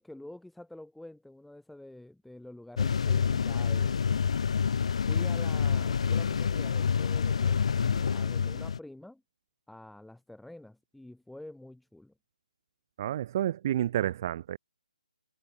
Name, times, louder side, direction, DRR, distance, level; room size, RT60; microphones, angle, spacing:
voice 1, 0.0-4.3 5.1-9.2 9.7-12.1, left 1 dB, ahead, 2.1 m, -48 dB
sound 1, 2.8-8.8, left 6 dB, 50° left, 3.3 m, -27 dB
voice 2, 13.0-14.6, right 11 dB, 25° right, 0.5 m, -30 dB
hypercardioid pair, 170°, 4 cm